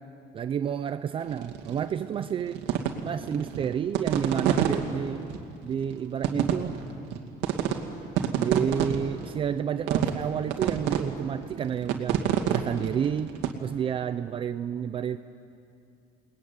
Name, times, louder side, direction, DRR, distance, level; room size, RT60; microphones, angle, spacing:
voice 1, 0.3-2.6 3.0-5.3 5.6-6.8 8.4-13.3 13.6-15.2, right 8 dB, 30° right, 11 dB, 0.6 m, -30 dB
sound 1, 1.3-1.8 2.2-4.8 5.3-5.4 5.8-6.0 6.2-7.2 7.4-7.8 8.0-9.3 9.9-10.3 10.5-11.0 11.4-13.5, right 10 dB, 80° right, 2.4 m, -26 dB
29.0 x 20.5 x 9.8 m, 2.6 s
cardioid pair, 170°, 18 cm